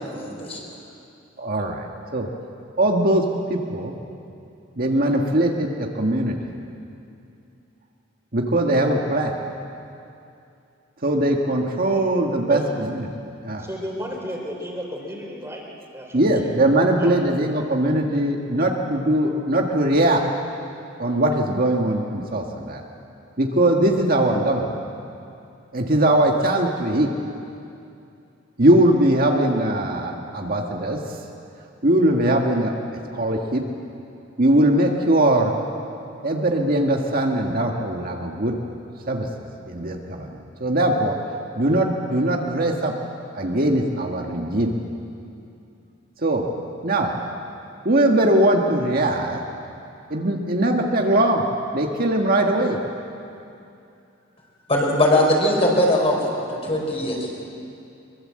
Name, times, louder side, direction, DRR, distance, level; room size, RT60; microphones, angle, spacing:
voice 1, 0.1-0.6 54.7-57.3, left 1 dB, 30° left, -1 dB, 5.1 m, -20 dB
voice 2, 1.4-2.3 2.8-3.2 3.5-3.9 4.8-6.4 8.3-9.3 11.0-13.1 13.4-13.6 14.0-14.1 16.1-20.2 21.0-22.8 23.4-24.7 25.7-27.1 28.6-31.0 31.8-32.7 33.1-33.6 34.4-35.5 36.2-38.5 39.1-39.3 39.7-41.2 41.6-42.9 43.3-44.7 46.2-46.4 46.8-47.1 47.8-49.4 50.1-51.4 51.7-52.8, right 1 dB, 50° right, 1 dB, 1.7 m, -20 dB
voice 3, 13.6-15.6 15.9-16.5 17.0-17.2, equal, 15° right, -1 dB, 3.7 m, -33 dB
23.0 x 23.0 x 7.7 m, 2.6 s
head